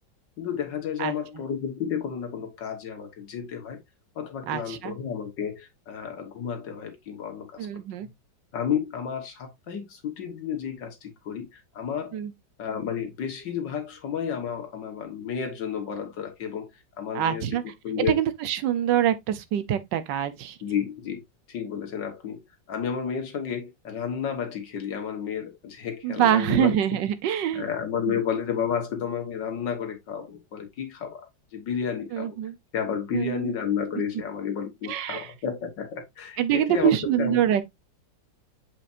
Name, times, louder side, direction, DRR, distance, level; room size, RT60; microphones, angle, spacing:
voice 1, 0.4-3.8 4.2-7.7 8.0-8.1 8.5-12.2 12.6-16.7 17.0-17.6 17.8-18.2 20.6-21.2 21.5-22.4 22.7-26.7 27.5-31.3 31.5-32.4 32.7-37.4, left 7 dB, 70° left, 2.1 m, -31 dB
voice 2, 4.5-4.9 7.6-8.1 12.1-12.3 17.1-17.6 18.0-20.6 26.0-27.6 28.1-28.2 32.1-32.5 33.1-33.5 34.9-35.3 36.4-37.6, right 10 dB, 75° right, 1.4 m, -25 dB
7.3 x 5.0 x 2.5 m
omnidirectional pair, 2.0 m